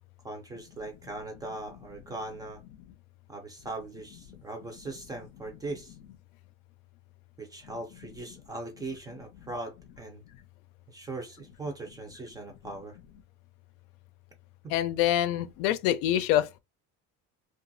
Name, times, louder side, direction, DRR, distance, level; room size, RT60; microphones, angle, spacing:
voice 1, 0.2-2.6 3.3-6.0 7.4-10.2 10.9-13.0 14.6-14.7, right 2 dB, 10° right, 0.4 m, -40 dB
voice 2, 14.7-16.6, left 12 dB, 80° left, 0.5 m, -26 dB
2.8 x 2.4 x 2.6 m
cardioid pair, 175°, 33 cm